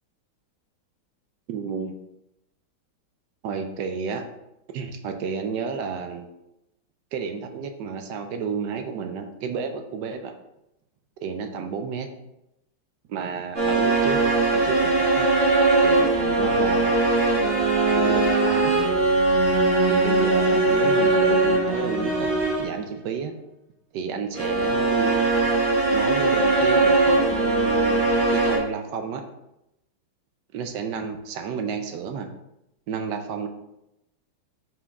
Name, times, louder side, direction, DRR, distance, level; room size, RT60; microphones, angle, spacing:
voice 1, 1.5-1.9 3.4-4.2 4.7-6.3 7.1-10.3 11.2-12.1 13.1-15.3 15.8-17.1 17.9-18.7 19.9-23.3 23.9-25.5 25.9-28.0 28.3-29.2 30.5-32.3 32.9-33.5, right 6 dB, 70° right, 7 dB, 1.1 m, -31 dB
sound 1, 13.5-22.8 24.3-28.6, right 2 dB, 35° right, 2.5 m, -20 dB
5.8 x 4.8 x 3.5 m, 0.87 s
omnidirectional pair, 2.3 m